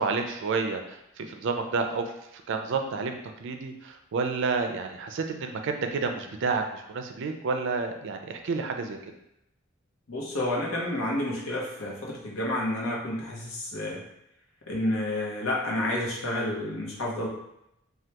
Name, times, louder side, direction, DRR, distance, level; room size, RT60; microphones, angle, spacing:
voice 1, 0.0-2.0 2.5-9.0, right 4 dB, 60° right, 5 dB, 0.4 m, -30 dB
voice 2, 10.1-14.0 14.7-17.3, left 1 dB, 80° left, -3 dB, 0.9 m, -30 dB
3.3 x 2.2 x 2.9 m, 0.81 s
head